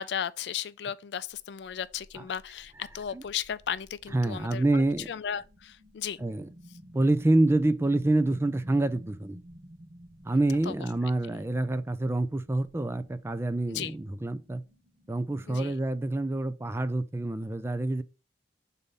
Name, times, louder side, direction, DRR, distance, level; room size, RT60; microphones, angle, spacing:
voice 1, 0.0-6.2 10.7-10.8 13.7-13.9 15.5-15.7, left 8 dB, 70° left, 0.4 m, -35 dB
sound 1, 1.3-15.6, equal, 45° right, 1.0 m, -53 dB
voice 2, 4.1-5.1 6.2-6.5 6.9-9.4 10.2-14.6 15.1-18.0, right 2 dB, 15° right, 0.4 m, -27 dB
6.7 x 4.1 x 3.6 m
head